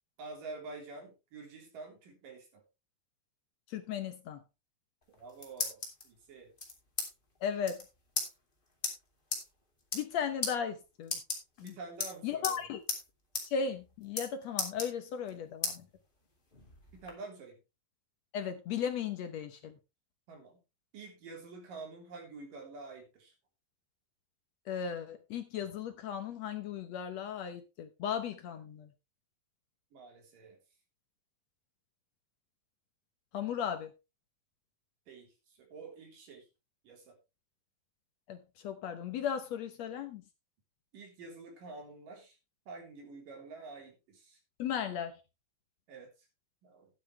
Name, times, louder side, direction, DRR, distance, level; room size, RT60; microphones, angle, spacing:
voice 1, 0.2-2.6 5.1-5.8 6.0-6.5 11.6-12.6 16.9-17.6 20.3-20.6 20.9-23.3 29.9-30.6 35.1-35.3 35.6-36.5 36.8-37.1 40.9-42.4 42.7-44.4 45.9-46.1 46.6-46.9, right 3 dB, 75° right, 5.0 m, -48 dB
voice 2, 3.7-4.4 7.4-7.8 9.9-11.2 11.6-11.8 12.2-12.8 13.4-15.8 18.3-19.8 24.7-28.9 33.3-33.9 38.3-38.4 38.6-40.2 44.6-45.1, left 7 dB, 65° left, 1.8 m, -36 dB
sound 1, 5.0-6.0 6.6-7.1 7.3-7.4 7.6-7.8 8.1-8.3 8.8-8.9 9.3-9.4 9.8-10.1 10.4-10.5 11.0-11.7 12.0-12.6 12.9-13.0 13.3-13.5 13.7-14.3 14.6-15.3 15.6-15.8 16.2-17.1, left 2 dB, 15° left, 2.6 m, -35 dB
12.5 x 10.0 x 3.3 m
omnidirectional pair, 3.9 m